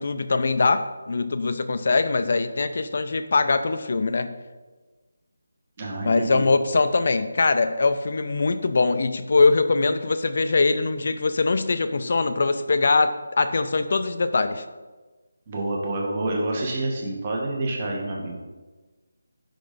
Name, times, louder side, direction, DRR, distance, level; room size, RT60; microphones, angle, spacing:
voice 1, 0.0-4.3 6.0-14.6, left 3 dB, 55° left, 10 dB, 0.4 m, -22 dB
voice 2, 5.8-6.4 15.5-18.4, right 2 dB, 30° right, -2 dB, 1.0 m, -28 dB
5.2 x 3.8 x 4.9 m, 1.3 s
figure-of-eight pair, 165°, 0 cm